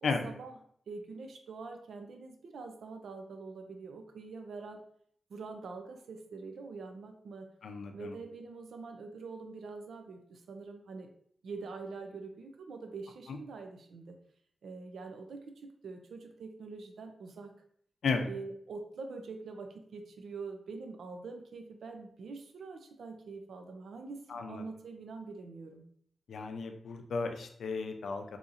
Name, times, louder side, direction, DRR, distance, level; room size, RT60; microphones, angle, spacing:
voice 1, 0.0-0.5 0.9-4.8 5.3-7.5 7.9-11.1 11.4-14.2 14.6-17.5 18.3-25.8, right 4 dB, 85° right, 5 dB, 0.5 m, -45 dB
voice 2, 7.6-8.2 13.3-13.4 18.0-18.3 24.3-24.6 26.3-28.4, left 4 dB, 80° left, 5 dB, 0.5 m, -34 dB
4.0 x 2.8 x 2.5 m, 0.63 s
wide cardioid pair, 130°, 0 cm